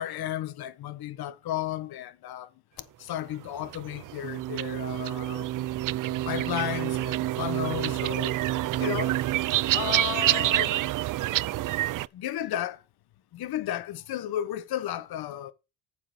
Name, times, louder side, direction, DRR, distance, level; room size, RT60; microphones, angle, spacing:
voice 1, 0.0-2.5 3.0-5.5 6.2-8.3 8.8-9.2 9.7-10.8 12.1-12.8 13.3-15.5, left 12 dB, 60° left, 1.3 m, -33 dB
sound 1, 3.4-12.1, right 15 dB, 50° right, 0.5 m, -27 dB
9.0 x 7.0 x 5.1 m
supercardioid pair, 70°, 41 cm